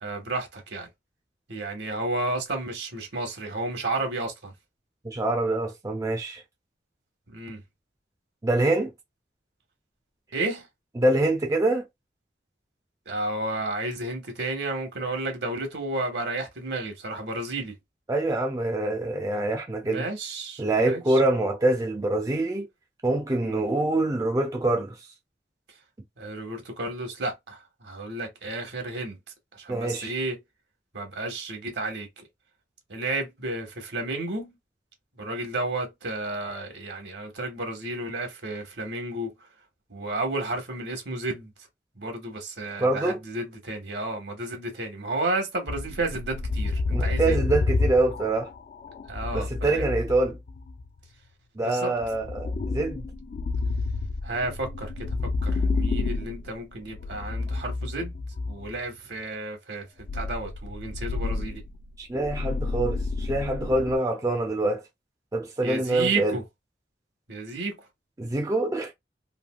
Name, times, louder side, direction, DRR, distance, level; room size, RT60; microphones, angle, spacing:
voice 1, 0.0-0.9 1.5-4.5 7.3-7.6 10.3-10.7 13.1-17.8 19.8-21.2 23.4-23.6 26.2-29.2 29.5-30.4 30.9-32.1 32.9-34.6 35.2-39.3 39.9-41.5 42.0-47.4 49.1-49.9 51.6-51.9 54.2-58.1 58.5-59.9 60.1-61.6 65.6-66.4 67.3-67.8, right 2 dB, 75° right, 1.1 m, -32 dB
voice 2, 5.0-6.4 8.4-8.9 11.0-11.9 18.1-20.1 20.6-22.7 23.0-25.0 29.7-30.1 42.8-43.2 46.9-48.5 49.3-50.4 51.6-53.0 62.0-64.8 65.3-66.4 68.2-68.9, right 2 dB, 20° right, 0.4 m, -25 dB
sound 1, 45.7-50.9 52.0-58.8 60.0-64.0, left 3 dB, 50° left, 0.3 m, -29 dB
3.3 x 2.6 x 2.2 m
head